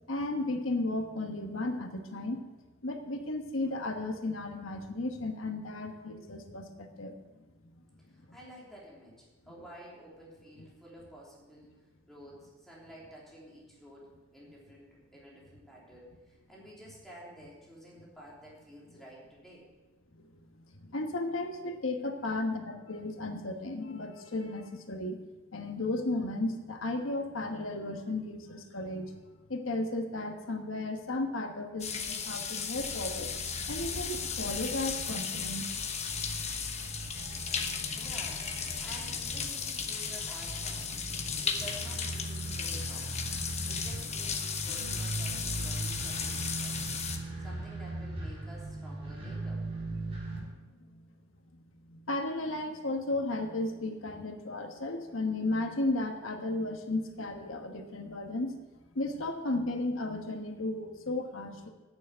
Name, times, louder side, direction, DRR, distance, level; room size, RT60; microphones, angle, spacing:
voice 1, 0.1-2.4 2.8-7.1 20.8-25.2 25.5-29.1 29.5-33.3 33.7-35.6 36.6-36.7 37.6-37.8 46.9-47.0 50.3-50.5 50.9-51.0 51.9-58.5 58.9-61.7, left 2 dB, 80° left, 4 dB, 1.3 m, -34 dB
voice 2, 8.1-11.8 12.1-19.7 37.9-38.5 38.8-41.0 41.4-43.2 43.7-46.9 47.4-49.7, equal, ahead, -6 dB, 3.2 m, -51 dB
sound 1, 31.8-47.2, left 6 dB, 35° left, 1.0 m, -35 dB
sound 2, 32.7-50.4, right 2 dB, 30° right, 4.0 m, -40 dB
9.4 x 7.0 x 8.8 m, 1.2 s
head